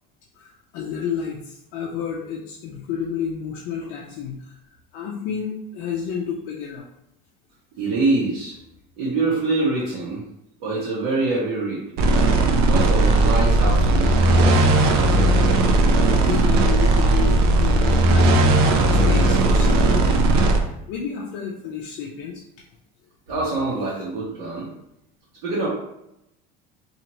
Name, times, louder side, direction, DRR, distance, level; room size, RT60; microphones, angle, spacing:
voice 1, 0.4-4.6 4.9-6.9 16.0-20.5 20.9-22.4, left 7 dB, 65° left, -2 dB, 0.4 m, -31 dB
voice 2, 7.8-8.5 9.0-10.2 10.6-11.8 12.6-14.6 23.3-24.7 25.4-25.7, right 3 dB, 75° right, -8 dB, 0.9 m, -25 dB
sound 1, 12.0-20.6, right 2 dB, 55° right, 0.4 m, -17 dB
2.8 x 2.5 x 2.9 m, 0.83 s
cardioid pair, 155°, 19 cm